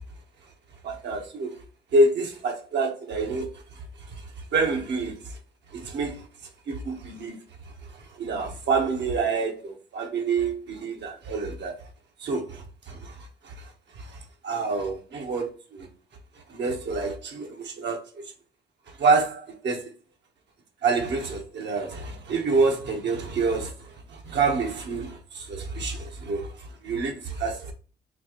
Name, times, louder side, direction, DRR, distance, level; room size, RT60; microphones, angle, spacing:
voice 1, 0.8-1.5 1.9-3.8 4.5-5.3 5.7-6.3 6.7-7.4 8.2-11.8 12.2-13.7 14.0-15.9 16.5-18.1 19.0-19.9 20.8-27.7, right 3 dB, 65° right, 1.0 m, -27 dB
4.2 x 2.4 x 3.0 m
cardioid pair, 90°, 20 cm